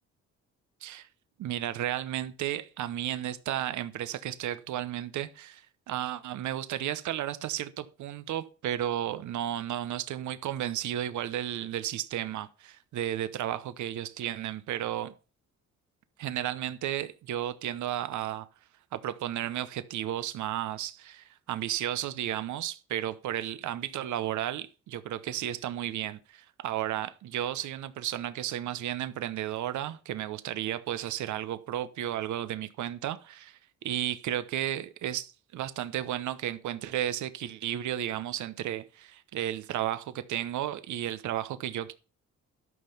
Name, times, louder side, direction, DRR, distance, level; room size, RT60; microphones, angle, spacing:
voice 1, 1.4-15.1 16.2-18.5 18.9-41.9, right 12 dB, 75° right, 0.9 m, -33 dB
12.5 x 5.7 x 5.7 m
cardioid pair, 90°, 30 cm